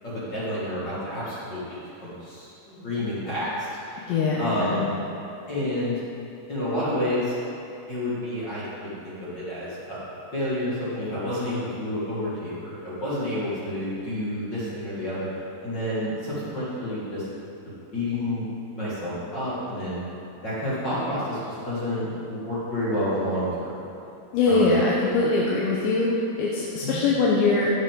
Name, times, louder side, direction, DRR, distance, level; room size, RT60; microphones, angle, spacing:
voice 1, 0.0-4.9 5.5-6.0 6.5-7.3 7.9-10.0 10.3-15.3 15.6-17.2 17.9-20.0 20.4-23.5 24.4-24.8 26.8-27.0, left 1 dB, 40° left, -10 dB, 1.6 m, -29 dB
voice 2, 4.0-4.9 24.3-27.7, left 3 dB, 80° left, -4 dB, 2.9 m, -22 dB
11.0 x 7.9 x 3.8 m, 2.9 s
omnidirectional pair, 5.3 m